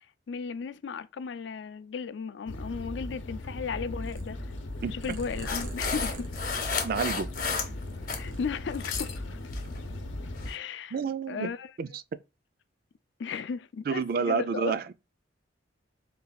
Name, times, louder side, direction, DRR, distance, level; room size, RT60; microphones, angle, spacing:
voice 1, 0.0-4.4 4.9-6.3 8.1-9.2 10.4-11.0 11.3-11.7 13.2-14.7, left 5 dB, 65° left, 0.4 m, -35 dB
sound 1, 2.5-10.5, left 1 dB, 85° left, 0.8 m, -38 dB
Purr, 4.0-7.6 7.9-9.0, right 1 dB, 85° right, 1.0 m, -44 dB
sound 2, 5.5-8.2 8.6-9.2 9.5-9.8 10.4-10.6, left 5 dB, 45° left, 0.8 m, -33 dB
voice 2, 6.8-7.3 10.9-11.5 11.8-12.0 13.9-14.9, right 5 dB, 50° right, 0.3 m, -29 dB
4.0 x 2.3 x 4.0 m
head